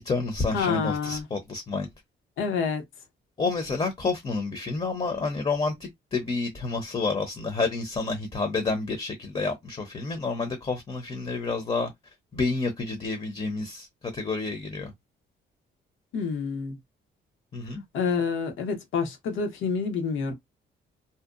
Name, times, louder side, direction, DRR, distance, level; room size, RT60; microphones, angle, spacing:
voice 1, 0.0-1.9 3.4-14.9 17.5-17.8, left 3 dB, 30° left, 0.7 m, -29 dB
voice 2, 0.5-1.3 2.4-2.8 16.1-16.8 17.9-20.3, left 5 dB, 80° left, 0.9 m, -28 dB
2.7 x 2.1 x 2.4 m
cardioid pair, 90°, 20 cm